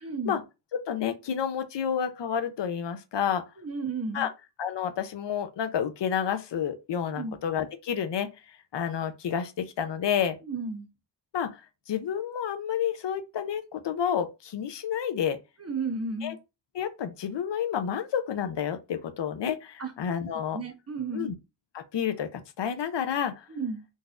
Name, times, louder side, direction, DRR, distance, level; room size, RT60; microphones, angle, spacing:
voice 1, 0.0-0.4 3.6-4.3 7.2-7.4 10.4-10.9 15.6-16.4 19.8-19.9 20.5-21.3 23.5-23.9, right 3 dB, 35° right, 0.7 m, -33 dB
voice 2, 0.7-3.4 4.1-4.3 4.6-10.4 11.3-11.6 11.9-15.4 16.2-16.3 16.7-20.6 21.1-21.3 21.7-23.5, left 8 dB, 75° left, 0.6 m, -30 dB
3.9 x 2.6 x 2.3 m
wide cardioid pair, 105°, 43 cm